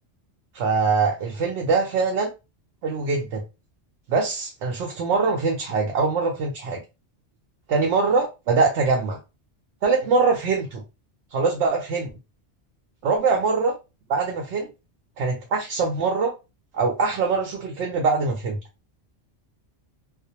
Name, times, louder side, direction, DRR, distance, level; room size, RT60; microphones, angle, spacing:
voice 1, 0.5-2.3 2.8-3.4 4.1-6.8 7.7-9.2 9.8-10.8 11.3-12.1 13.0-13.8 14.1-14.7 15.2-16.3 16.7-18.6, right 4 dB, 80° right, 0.9 m, -23 dB
2.5 x 2.0 x 2.7 m
omnidirectional pair, 1.2 m